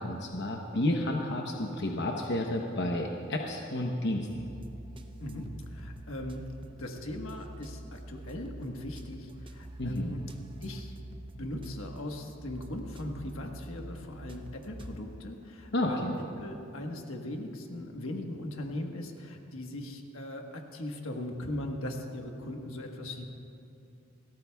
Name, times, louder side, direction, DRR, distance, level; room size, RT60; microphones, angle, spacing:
voice 1, 0.0-4.5 9.8-10.2 15.7-16.2, left 1 dB, 55° left, 1 dB, 0.9 m, -31 dB
sound 1, 4.3-15.0, right 1 dB, 25° right, 0.6 m, -46 dB
voice 2, 5.2-10.2 10.6-11.0 11.3-16.0 16.4-23.3, left 1 dB, 85° left, 3 dB, 1.4 m, -39 dB
29.5 x 13.5 x 2.3 m, 2.7 s
head